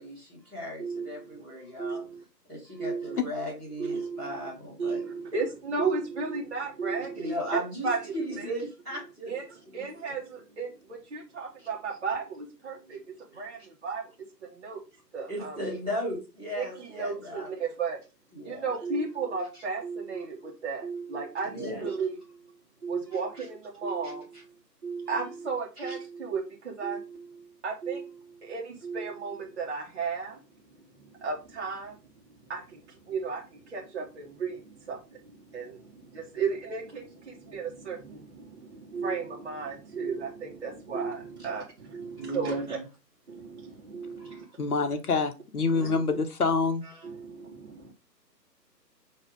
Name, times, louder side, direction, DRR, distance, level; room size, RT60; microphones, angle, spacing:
voice 1, 0.0-2.0 2.5-5.0 7.2-7.9 8.1-9.3 9.6-9.8 15.3-17.7 18.3-18.7 21.5-21.8 23.4-23.5 25.8-25.9 42.2-42.8 44.2-44.4 45.8-45.9 46.8-47.1, equal, 5° right, 0.8 m, -36 dB
voice 2, 0.8-1.4 1.8-2.2 2.8-3.2 3.8-4.5 4.8-7.4 7.8-8.6 9.3-14.1 14.5-14.8 15.1-15.6 16.6-18.0 18.4-22.4 22.8-24.5 24.8-30.4 31.0-32.0 32.5-42.8 43.3-44.5 45.7-46.2 47.0-47.9, right 4 dB, 40° right, 1.2 m, -34 dB
voice 3, 44.6-46.8, left 4 dB, 60° left, 0.9 m, -26 dB
5.1 x 2.8 x 3.4 m
figure-of-eight pair, 145°, 50 cm